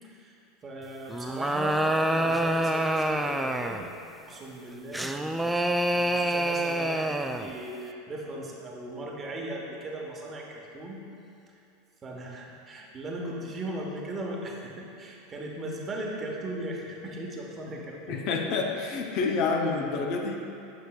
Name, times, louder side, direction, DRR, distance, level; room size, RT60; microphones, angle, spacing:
voice 1, 0.0-0.4 0.6-3.8 4.2-5.6 5.9-11.0 12.0-18.2, right 1 dB, 30° right, -1 dB, 1.1 m, -38 dB
sound 1, 1.1-3.9 4.9-7.5, right 1 dB, 5° right, 0.3 m, -27 dB
voice 2, 18.1-20.4, left 4 dB, 55° left, 2 dB, 0.6 m, -28 dB
7.7 x 6.5 x 2.3 m, 2.7 s
hypercardioid pair, 90°, 0 cm